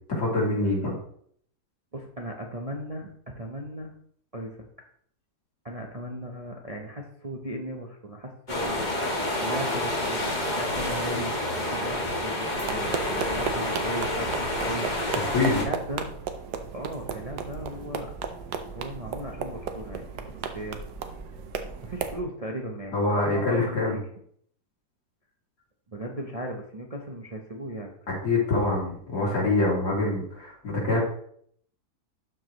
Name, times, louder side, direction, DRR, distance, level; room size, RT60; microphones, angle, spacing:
voice 1, 0.1-1.0 15.2-15.6 22.9-24.0 28.1-31.0, left 2 dB, 75° left, -4 dB, 3.2 m, -25 dB
voice 2, 1.9-3.9 4.3-4.6 5.6-16.1 16.7-18.1 18.7-20.8 21.8-24.0 25.9-27.9, right 1 dB, 35° right, 0 dB, 0.6 m, -37 dB
sound 1, 8.5-15.6, left 1 dB, 30° left, 1.4 m, -29 dB
sound 2, 12.5-22.2, right 6 dB, 80° right, 1.4 m, -35 dB
12.5 x 4.8 x 3.1 m, 0.64 s
omnidirectional pair, 1.8 m